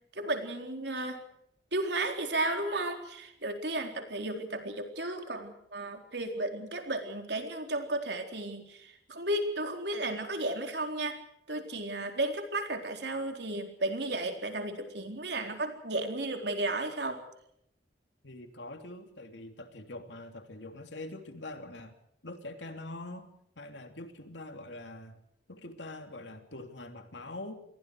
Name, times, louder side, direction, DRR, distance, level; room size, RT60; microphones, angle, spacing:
voice 1, 0.1-1.2 1.7-11.2 11.5-17.2, right 2 dB, 70° right, 4 dB, 4.1 m, -34 dB
voice 2, 18.2-21.9 22.2-25.2 25.5-27.5, left 2 dB, 80° left, 6 dB, 3.2 m, -44 dB
28.5 x 22.5 x 4.9 m, 0.74 s
head